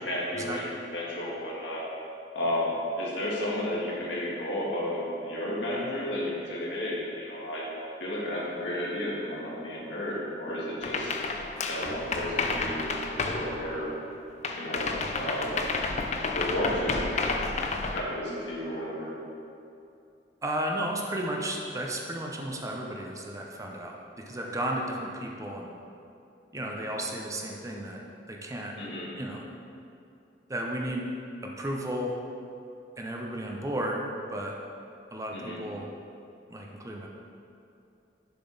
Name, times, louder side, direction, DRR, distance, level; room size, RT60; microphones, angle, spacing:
voice 1, 0.0-1.9 2.4-7.6 8.0-11.2 11.5-13.9 14.6-15.6 16.3-17.3 17.7-19.1 28.8-29.1 35.3-35.6, left 1 dB, 75° left, -5 dB, 1.6 m, -32 dB
sound 1, 10.8-14.1 14.4-18.0, left 3 dB, 40° left, 0.5 m, -31 dB
voice 2, 20.4-25.7 26.5-28.0 28.3-28.7 29.2-29.4 30.5-31.1 31.4-32.2 33.0-34.6 35.1-35.9 36.5-37.1, right 1 dB, 20° right, 0 dB, 0.6 m, -33 dB
6.8 x 6.0 x 3.9 m, 2.6 s
head